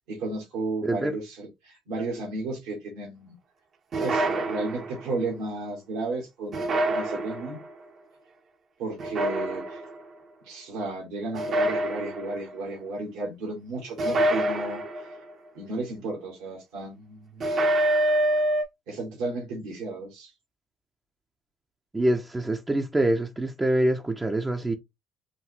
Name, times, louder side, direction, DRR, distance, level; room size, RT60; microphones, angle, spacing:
voice 1, 0.1-3.4 4.0-7.6 8.8-9.8 10.4-15.1 15.5-17.4 18.9-20.3, right 2 dB, 80° right, 1.9 m, -33 dB
sound 1, 3.9-5.1 6.5-7.7 9.0-10.0 11.3-12.5 14.0-15.3 17.4-18.6, right 1 dB, 50° right, 1.1 m, -26 dB
voice 2, 21.9-24.8, right 1 dB, 20° right, 0.8 m, -25 dB
5.1 x 2.6 x 3.3 m
hypercardioid pair, 60°, 0 cm